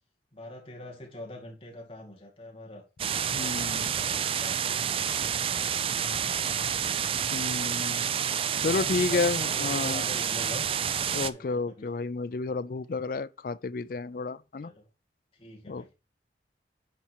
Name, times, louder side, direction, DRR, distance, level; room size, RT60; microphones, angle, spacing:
voice 1, 0.3-5.0 5.6-6.4 8.5-10.7 11.1-11.9 14.6-14.9 15.3-15.9, left 1 dB, 30° left, 2.3 m, -44 dB
sound 1, 3.0-11.3, right 8 dB, 30° right, 0.3 m, -29 dB
voice 2, 3.3-3.9 7.3-8.1 8.6-10.0 11.1-14.7 15.7-15.8, left 4 dB, 50° left, 0.4 m, -31 dB
9.4 x 4.3 x 4.5 m
head